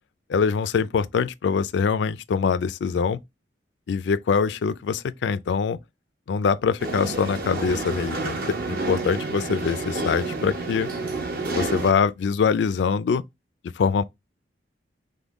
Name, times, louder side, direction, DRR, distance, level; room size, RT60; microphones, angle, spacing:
voice 1, 0.3-3.2 3.9-5.8 6.3-10.9 11.5-13.2 13.8-14.0, left 6 dB, 70° left, 0.3 m, -24 dB
sound 1, 6.8-11.9, right 3 dB, 55° right, 0.9 m, -29 dB
5.2 x 2.2 x 3.5 m
head